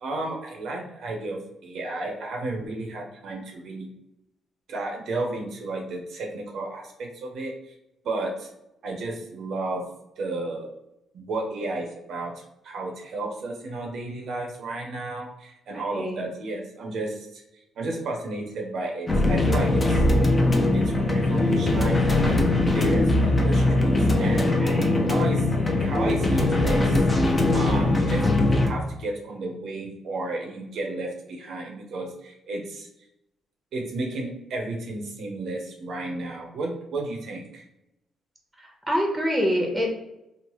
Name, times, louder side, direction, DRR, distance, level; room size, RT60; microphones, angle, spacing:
voice 1, 0.0-3.9 4.7-7.7 8.0-8.5 8.8-9.9 10.2-10.7 11.1-12.3 12.6-17.4 17.8-20.0 20.7-22.4 22.7-24.6 25.1-27.1 27.5-32.9 33.7-37.6, right 2 dB, 65° right, 1 dB, 0.5 m, -32 dB
voice 2, 15.7-16.2 24.6-25.1 38.6-39.9, equal, 10° right, 0 dB, 0.8 m, -26 dB
sound 1, 19.1-28.7, left 2 dB, 25° left, 0.5 m, -21 dB
3.0 x 2.0 x 2.9 m, 0.87 s
cardioid pair, 90°, 0 cm